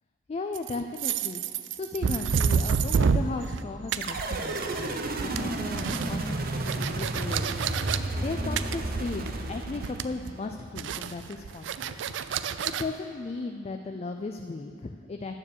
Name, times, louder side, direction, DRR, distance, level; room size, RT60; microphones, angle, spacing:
voice 1, 0.3-7.8 8.2-12.0 12.3-15.4, left 3 dB, 35° left, 5 dB, 0.4 m, -36 dB
sound 1, 0.5-3.6 3.9-4.8 5.0-8.0 8.6-9.4 9.7-10.3 10.8-12.8, right 6 dB, 70° right, 0.4 m, -28 dB
sound 2, 3.1-3.5 3.8-6.3 6.7-7.7 8.0-11.1 11.6-11.8 12.2-12.6 13.0-13.2, right 5 dB, 90° right, 1.2 m, -51 dB
sound 3, 4.0-10.5, right 2 dB, 55° right, 0.8 m, -32 dB
9.7 x 6.9 x 6.8 m, 2.3 s
head